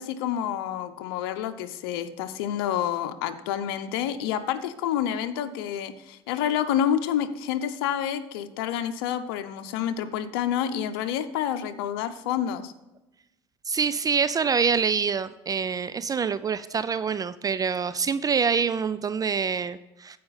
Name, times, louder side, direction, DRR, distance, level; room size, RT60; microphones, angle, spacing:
voice 1, 0.0-12.7, left 10 dB, 85° left, 9 dB, 0.7 m, -28 dB
voice 2, 13.7-20.2, right 6 dB, 30° right, 14 dB, 0.4 m, -26 dB
15.0 x 5.1 x 4.0 m, 0.98 s
supercardioid pair, 80°, 12 cm